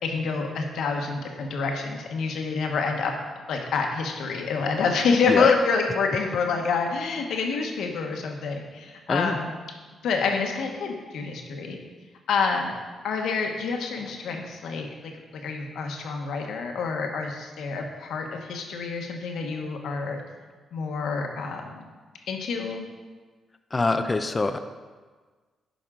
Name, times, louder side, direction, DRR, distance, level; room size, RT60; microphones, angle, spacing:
voice 1, 0.0-3.1 3.5-9.5 10.0-11.8 12.3-12.7 13.0-20.2 20.7-21.9 22.3-22.9, left 5 dB, 80° left, 2 dB, 1.1 m, -27 dB
voice 2, 23.7-24.6, left 3 dB, 25° left, 8 dB, 0.5 m, -24 dB
10.0 x 5.4 x 3.8 m, 1.4 s
cardioid pair, 80°, 0 cm